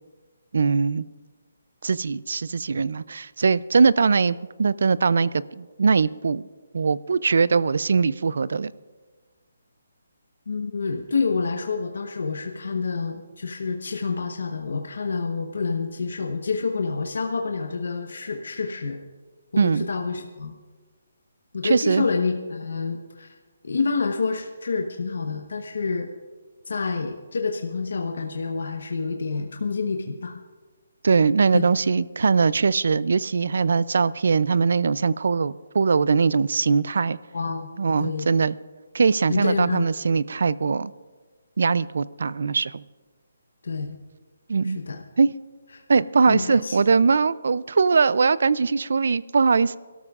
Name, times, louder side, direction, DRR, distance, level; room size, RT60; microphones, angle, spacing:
voice 1, 0.5-1.1 1.8-6.5 6.7-8.7 19.6-19.9 21.6-22.1 31.0-37.2 37.8-38.5 38.9-40.9 41.6-42.8 44.5-44.8 45.2-45.3 45.9-49.8, right 5 dB, 60° right, 19 dB, 0.4 m, -21 dB
voice 2, 10.5-19.0 19.5-20.5 21.5-23.3 23.6-26.1 26.7-30.4 31.5-31.7 37.3-38.4 39.3-40.0 43.6-44.0 44.6-45.0 45.7-45.8 46.3-46.8, left 4 dB, 70° left, 3 dB, 0.9 m, -28 dB
27.0 x 13.0 x 2.4 m, 1.4 s
hypercardioid pair, 175°, 0 cm